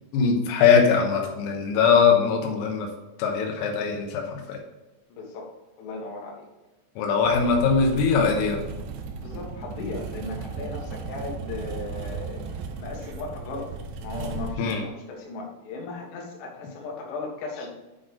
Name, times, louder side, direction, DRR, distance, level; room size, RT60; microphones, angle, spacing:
voice 1, 0.1-2.9 3.2-4.6 7.0-8.6 14.6-14.8, left 5 dB, 90° left, 2 dB, 3.8 m, -21 dB
voice 2, 5.1-5.5 5.8-6.5 9.2-13.7 14.0-17.7, left 3 dB, 65° left, 0 dB, 3.4 m, -37 dB
sound 1, 7.2-14.5, right 4 dB, 80° right, 3.1 m, -36 dB
9.4 x 4.2 x 5.0 m, 1.1 s
omnidirectional pair, 6.0 m